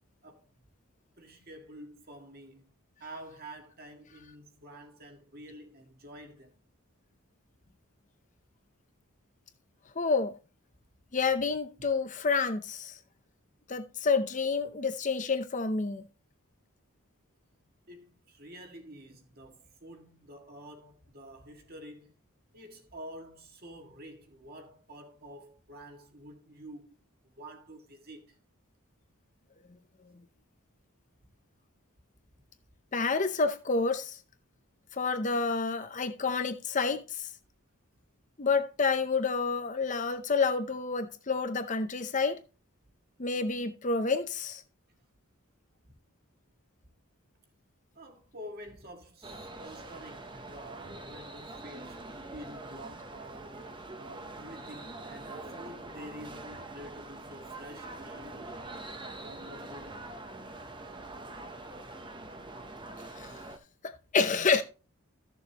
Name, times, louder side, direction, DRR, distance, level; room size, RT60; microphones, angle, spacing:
voice 1, 1.2-2.7 3.0-6.6 17.9-22.1 22.5-27.0 27.2-28.4 31.2-31.3 45.9-46.0 48.0-52.0 52.3-53.6 54.0-58.5 59.1-60.1, equal, 45° right, 1.8 m, -48 dB
voice 2, 10.0-10.3 11.1-13.0 13.7-16.1 32.9-34.2 34.9-37.3 38.4-42.4 43.2-44.6 63.1-63.4 63.8-64.6, left 4 dB, 35° left, 0.6 m, -29 dB
sound 1, 49.2-63.6, right 2 dB, 20° right, 0.8 m, -44 dB
14.0 x 6.9 x 2.9 m
head